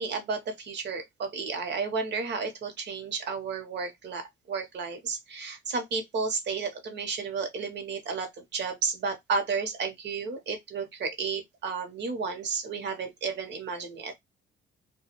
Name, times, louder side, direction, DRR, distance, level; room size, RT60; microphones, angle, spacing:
voice 1, 0.0-14.2, right 5 dB, 60° right, 1.0 m, -32 dB
2.3 x 2.2 x 2.8 m
cardioid pair, 90°, 20 cm